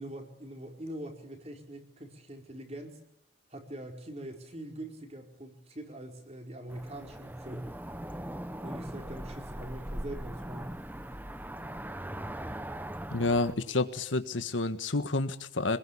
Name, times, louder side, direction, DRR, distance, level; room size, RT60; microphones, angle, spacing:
voice 1, 0.0-3.0 3.5-7.7 8.6-10.7, right 1 dB, 35° right, 4 dB, 4.7 m, -43 dB
Cricket / Motor vehicle (road), 6.7-13.6, right 1 dB, 10° right, 0.9 m, -40 dB
voice 2, 13.1-15.8, left 2 dB, 90° left, 10 dB, 1.5 m, -29 dB
27.0 x 21.0 x 8.6 m, 0.72 s
head